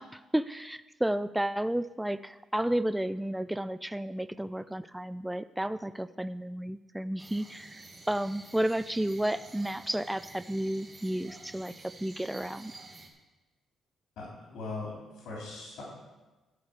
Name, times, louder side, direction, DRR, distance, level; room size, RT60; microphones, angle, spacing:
voice 1, 0.0-7.8 8.1-11.7 12.0-12.7, right 1 dB, 5° right, 14 dB, 0.4 m, -32 dB
sound 1, 7.2-13.1, right 3 dB, 30° right, 1.7 m, -50 dB
voice 2, 14.2-14.9 15.2-15.8, left 3 dB, 75° left, -5 dB, 3.4 m, -39 dB
12.0 x 4.6 x 8.4 m, 1.1 s
cardioid pair, 90°, 0 cm